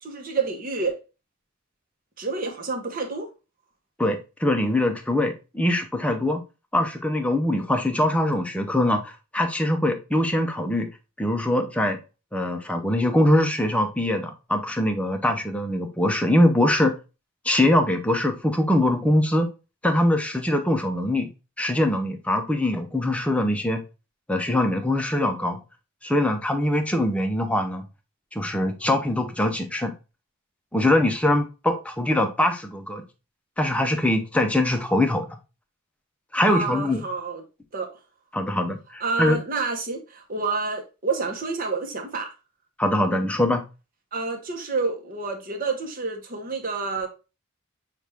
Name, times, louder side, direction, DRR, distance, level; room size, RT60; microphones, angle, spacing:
voice 1, 0.0-1.0 2.2-3.3 36.5-37.4 37.7-37.9 39.0-42.3 44.1-47.1, right 4 dB, 40° right, 0.9 m, -28 dB
voice 2, 4.0-6.4 6.7-10.9 11.2-12.0 12.3-16.9 17.4-19.5 19.8-21.3 21.6-23.8 24.3-25.6 26.0-27.9 28.3-29.9 30.7-33.0 33.6-35.3 36.3-37.0 38.3-39.4 42.8-43.6, left 1 dB, 5° left, 0.6 m, -23 dB
5.9 x 2.4 x 3.4 m
head